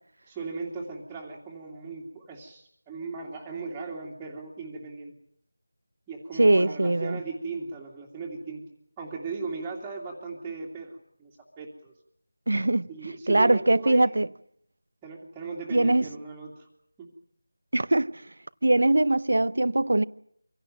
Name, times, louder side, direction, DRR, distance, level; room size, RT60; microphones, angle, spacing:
voice 1, 0.3-5.1 6.1-8.6 9.0-11.9 12.9-14.2 15.0-16.7 17.0-17.1, right 4 dB, 10° right, 2.6 m, -37 dB
voice 2, 6.4-7.2 12.5-14.3 15.7-16.1 17.7-18.3 18.6-20.0, right 2 dB, 70° right, 0.9 m, -22 dB
26.0 x 17.0 x 9.1 m
figure-of-eight pair, 170°, 0 cm